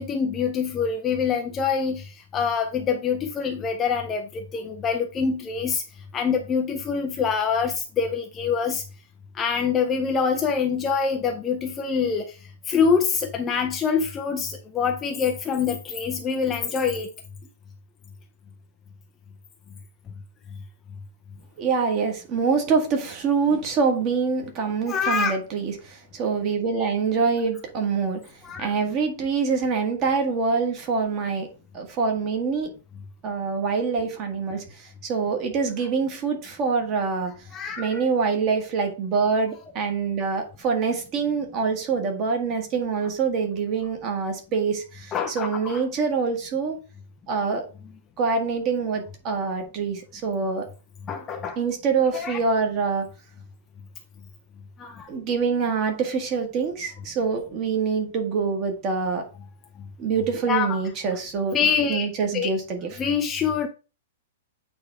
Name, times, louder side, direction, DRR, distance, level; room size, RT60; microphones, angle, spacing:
voice 1, 0.0-5.8 6.1-8.8 9.3-12.4 12.7-17.1 24.9-25.3 28.4-28.7 37.5-38.0 45.1-45.8 51.1-51.6 52.1-52.4 54.8-55.1 60.5-60.8 61.5-62.1 62.3-62.5 63.0-63.7, left 6 dB, 15° left, 0.5 m, -25 dB
voice 2, 21.6-28.2 28.6-31.5 31.7-32.7 33.2-37.5 37.8-46.8 47.3-47.7 48.2-50.7 51.6-53.1 55.1-59.3 60.0-61.6 61.9-63.0, right 5 dB, 25° right, 1.4 m, -25 dB
8.6 x 3.5 x 4.7 m
supercardioid pair, 175°, 0 cm